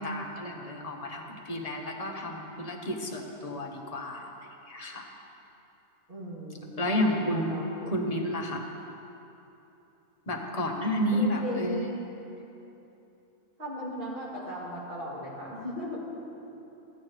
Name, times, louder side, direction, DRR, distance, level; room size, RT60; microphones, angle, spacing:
voice 1, 0.0-4.3 4.7-5.1 6.8-7.6 7.9-8.6 10.3-11.9, equal, 35° left, 0 dB, 0.9 m, -31 dB
voice 2, 6.1-7.9 11.1-12.1 13.6-16.0, equal, 45° right, -8 dB, 2.5 m, -37 dB
15.0 x 8.9 x 3.2 m, 3.0 s
omnidirectional pair, 1.4 m